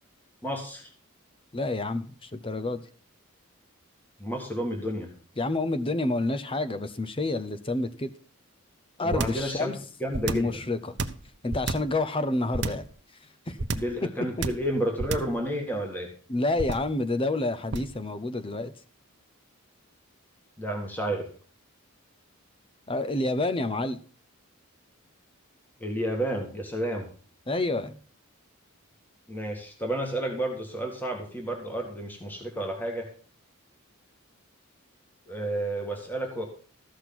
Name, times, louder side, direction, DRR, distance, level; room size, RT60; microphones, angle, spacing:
voice 1, 0.4-0.8 4.2-5.1 9.0-9.7 10.0-10.6 13.7-16.1 20.6-21.3 25.8-27.1 29.3-33.1 35.3-36.4, right 1 dB, 10° left, 2.0 m, -31 dB
voice 2, 1.5-2.8 5.4-8.1 9.0-9.8 10.3-11.0 11.4-12.9 13.5-13.6 16.3-18.7 22.9-24.0 27.5-28.0, left 2 dB, 25° left, 0.7 m, -28 dB
sound 1, 9.1-9.5 10.1-10.6 11.0-12.0 12.5-12.9 13.6-14.0 14.4-14.7 15.0-15.4 16.6-17.0 17.7-18.0, right 3 dB, 50° right, 0.8 m, -30 dB
14.0 x 6.5 x 6.0 m
head